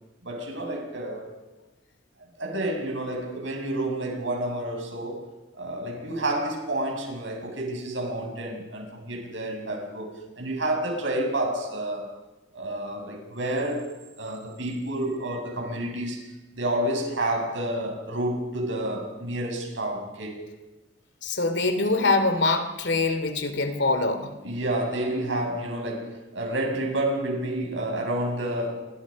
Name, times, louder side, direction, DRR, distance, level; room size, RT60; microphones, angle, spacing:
voice 1, 0.2-1.4 2.4-5.3 5.6-12.1 12.5-13.9 14.2-16.2 16.5-20.4 24.4-28.9, right 1 dB, 70° right, 7.4 m, -29 dB
voice 2, 21.2-24.3, left 3 dB, 65° left, 3.0 m, -24 dB
29.0 x 26.5 x 5.4 m
head